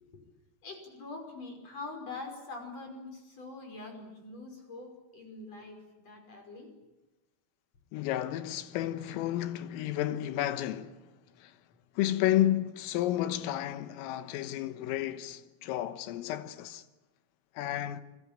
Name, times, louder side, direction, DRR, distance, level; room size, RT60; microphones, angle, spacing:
voice 1, 0.6-6.7, left 3 dB, 30° left, 6.1 m, -44 dB
voice 2, 7.9-11.0 11.4-11.5 12.0-16.8 17.6-18.0, left 13 dB, 85° left, 3.8 m, -31 dB
28.5 x 21.5 x 8.9 m
omnidirectional pair, 5.8 m